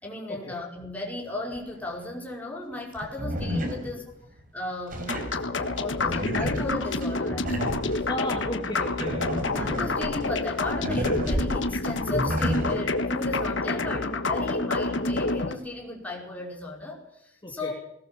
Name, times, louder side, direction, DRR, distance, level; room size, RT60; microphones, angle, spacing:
voice 1, 0.0-4.1 4.5-7.8 8.5-8.6 9.5-17.7, left 2 dB, 10° left, -2 dB, 5.2 m, -35 dB
sound 1, 1.5-1.6 3.0-4.4 4.9-8.1 8.8-12.8, equal, 45° right, 4.5 m, -31 dB
sound 2, 5.1-15.5, left 2 dB, 75° left, 1.5 m, -28 dB
voice 2, 8.1-9.8 17.4-17.7, left 1 dB, 25° left, -1 dB, 3.0 m, -35 dB
19.5 x 19.0 x 7.1 m, 0.80 s
head